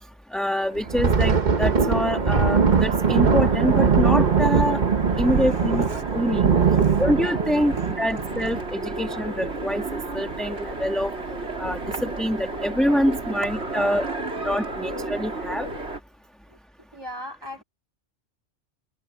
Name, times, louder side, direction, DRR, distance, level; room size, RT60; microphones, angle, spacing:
voice 1, 0.3-4.8 5.2-5.8 6.1-6.5 7.0-11.1 11.6-14.1 14.4-15.7, equal, ahead, 1.6 m, -25 dB
Train, 0.6-16.0, right 2 dB, 65° right, 3.7 m, -33 dB
Thunder, 0.8-9.8 10.2-10.4 10.8-11.0 11.6-12.1, right 5 dB, 40° right, 1.2 m, -21 dB
voice 2, 5.2-6.1 6.7-7.1 7.7-7.9 13.8-13.9 14.2-14.6 16.9-17.6, equal, 20° right, 3.1 m, -38 dB
omnidirectional pair, 1.2 m